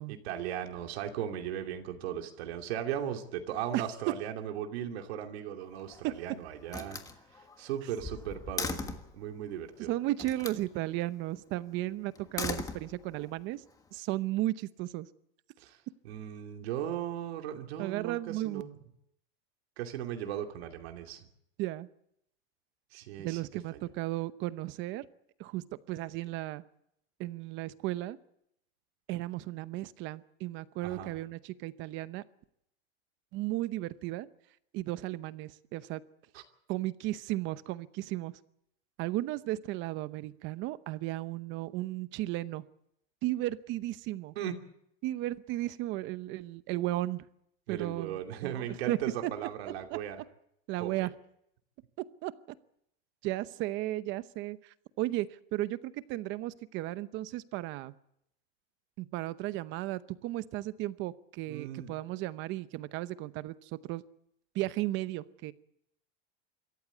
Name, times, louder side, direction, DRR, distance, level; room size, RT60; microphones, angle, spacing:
voice 1, 0.1-7.0 7.3-9.9 15.6-15.8 16.0-18.8 19.8-21.2 22.9-23.4 23.7-23.8 30.8-31.1 36.3-36.4 44.4-44.5 47.7-50.2 50.8-51.1 61.5-61.9, right 10 dB, 90° right, 4 dB, 2.8 m, -37 dB
Slam, 5.6-6.2 6.7-9.2 10.2-10.6 12.1-13.3, left 4 dB, 10° left, 1.4 m, -38 dB
voice 2, 9.9-13.6 13.9-15.1 17.8-18.6 21.6-21.9 23.2-25.1 25.4-26.6 27.2-28.2 29.1-32.2 33.3-34.3 34.7-36.0 36.7-38.3 39.0-42.6 43.2-44.4 45.0-47.3 47.7-49.0 49.2-49.3 49.9-50.0 50.7-51.1 52.2-52.3 53.2-57.9 59.0-64.0 64.5-65.5, right 16 dB, 40° right, 15 dB, 0.8 m, -35 dB
26.0 x 14.0 x 8.3 m, 0.77 s
supercardioid pair, 160°, 31 cm